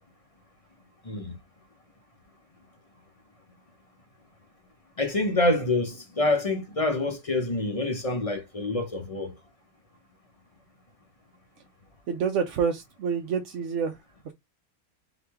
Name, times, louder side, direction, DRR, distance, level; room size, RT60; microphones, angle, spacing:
voice 1, 1.0-1.4 5.0-9.3, left 2 dB, 30° left, 0.7 m, -26 dB
voice 2, 12.1-14.0, right 6 dB, 65° right, 0.9 m, -27 dB
4.0 x 3.1 x 3.4 m
omnidirectional pair, 1.5 m